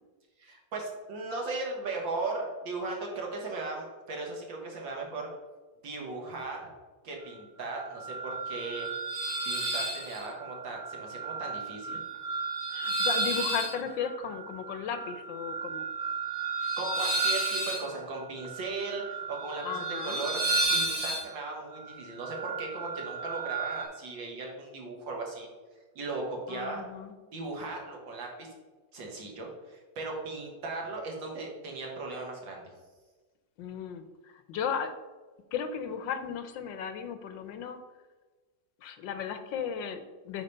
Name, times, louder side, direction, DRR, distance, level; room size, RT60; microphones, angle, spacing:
voice 1, 0.4-5.3 5.8-6.7 7.0-8.9 9.5-12.0 16.6-20.4 20.7-25.5 26.0-26.8 27.3-28.5 28.9-32.6, right 3 dB, 85° right, 0 dB, 2.4 m, -37 dB
sound 1, 7.7-23.8, right 3 dB, 55° right, 2.4 m, -33 dB
voice 2, 12.7-15.8 19.6-20.2 26.5-27.1 33.6-34.9 35.5-37.8 38.8-40.4, left 7 dB, 80° left, 9 dB, 1.5 m, -35 dB
8.3 x 4.4 x 5.5 m, 1.3 s
omnidirectional pair, 2.0 m